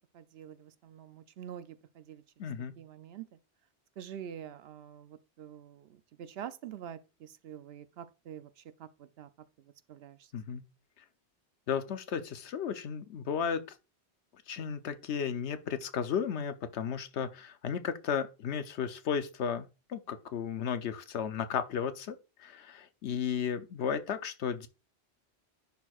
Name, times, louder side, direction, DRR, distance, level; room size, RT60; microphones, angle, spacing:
voice 1, 0.1-2.2 2.8-3.3 4.0-9.3 9.9-10.6, right 9 dB, 70° right, 0.8 m, -46 dB
voice 2, 2.4-2.7 10.3-10.6 11.7-13.6 14.5-24.7, left 7 dB, 80° left, 1.0 m, -34 dB
10.5 x 4.5 x 2.4 m
omnidirectional pair, 1.1 m